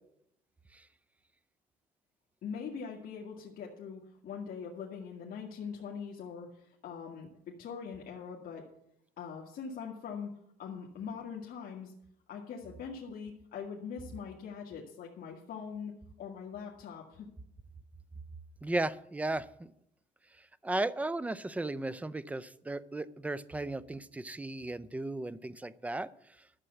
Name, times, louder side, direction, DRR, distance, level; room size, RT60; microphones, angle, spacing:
voice 1, 2.4-8.7 9.2-10.3 10.6-11.9 12.3-17.3, left 6 dB, 55° left, -3 dB, 1.9 m, -42 dB
voice 2, 18.6-19.7 20.6-26.1, right 2 dB, 10° right, 16 dB, 0.5 m, -35 dB
12.5 x 6.8 x 8.1 m, 0.77 s
cardioid pair, 110°, 17 cm